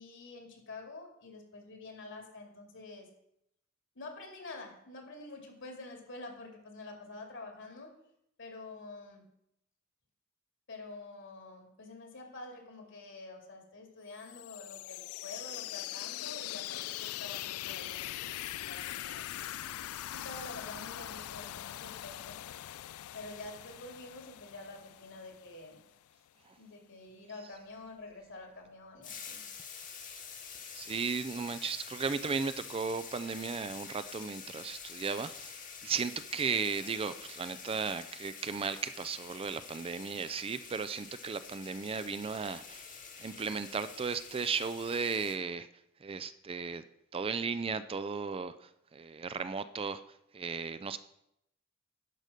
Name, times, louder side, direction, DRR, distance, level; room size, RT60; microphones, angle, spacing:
voice 1, 0.0-3.1 4.0-7.9 8.4-9.3 10.7-19.3 20.1-22.4 23.1-25.8 26.6-29.4, left 2 dB, 60° left, 3 dB, 2.2 m, -47 dB
sound 1, 14.1-25.8, left 14 dB, 85° left, 0.3 m, -42 dB
sound 2, 29.0-45.4, left 6 dB, 40° left, 1.4 m, -47 dB
voice 2, 30.7-35.5 35.8-42.9 43.2-45.7 46.0-46.8 47.1-48.6 48.9-50.0 50.3-51.0, right 5 dB, 25° right, 12 dB, 0.4 m, -35 dB
10.5 x 5.2 x 6.4 m, 0.79 s
head